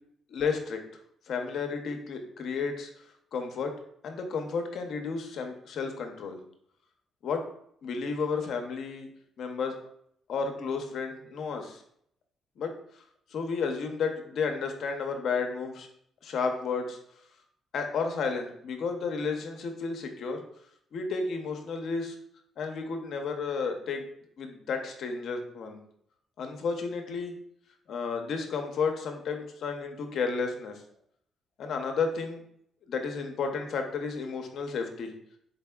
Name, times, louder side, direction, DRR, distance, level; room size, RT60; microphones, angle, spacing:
voice 1, 0.3-0.8 1.3-2.9 3.3-3.7 4.0-6.4 7.2-7.4 7.8-9.1 9.4-9.8 10.3-11.8 12.6-12.7 13.3-15.9 16.2-17.0 17.7-20.4 20.9-22.1 22.6-24.1 24.4-25.8 26.4-27.4 27.9-30.8 31.6-32.4 32.9-35.1, left 5 dB, 65° left, 4 dB, 0.6 m, -32 dB
3.9 x 3.4 x 2.2 m, 0.69 s
cardioid pair, 90°, 0 cm